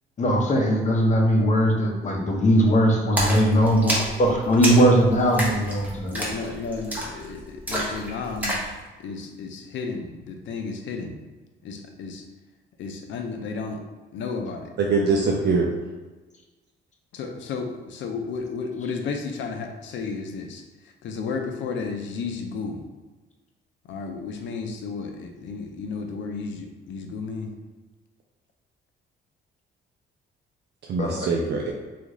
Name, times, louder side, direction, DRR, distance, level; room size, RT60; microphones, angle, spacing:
voice 1, 0.2-6.1 31.0-31.3, equal, 35° left, 1 dB, 0.8 m, -20 dB
Splash splatter, 3.2-8.7, right 1 dB, 10° right, 0.9 m, -29 dB
voice 2, 6.1-8.7 9.0-11.2 11.6-12.3 12.8-13.8 14.1-14.7 17.1-22.9 23.8-27.6, left 4 dB, 70° left, 4 dB, 0.6 m, -33 dB
voice 3, 14.8-15.7 30.8-31.7, right 4 dB, 60° right, -1 dB, 0.5 m, -23 dB
2.9 x 2.5 x 3.7 m, 1.2 s
cardioid pair, 90°, 20 cm